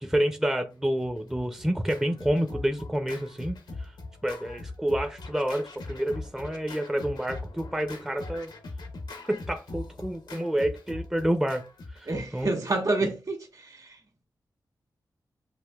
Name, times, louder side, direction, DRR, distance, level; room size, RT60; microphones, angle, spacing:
voice 1, 0.0-3.5 3.8-3.9 4.2-8.5 9.3-11.6 12.0-12.5 13.0-13.1, right 1 dB, 5° right, 0.5 m, -28 dB
Scratching (performance technique), 1.0-13.1, left 2 dB, 85° left, 0.9 m, -41 dB
voice 2, 12.1-14.0, right 2 dB, 55° right, 1.6 m, -28 dB
7.6 x 2.6 x 2.3 m
cardioid pair, 55°, 8 cm